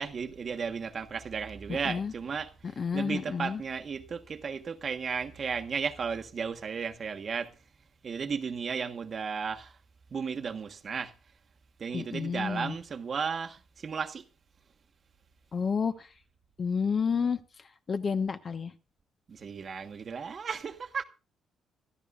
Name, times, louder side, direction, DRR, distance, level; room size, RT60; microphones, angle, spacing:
voice 1, 0.0-7.5 8.0-9.8 10.1-11.1 11.8-14.2 19.3-21.0, right 6 dB, 45° right, 1.3 m, -34 dB
voice 2, 1.7-2.1 2.6-3.6 11.9-12.8 15.5-16.1 16.6-18.7, left 6 dB, 45° left, 1.2 m, -31 dB
25.5 x 12.5 x 2.5 m
cardioid pair, 90°, 0 cm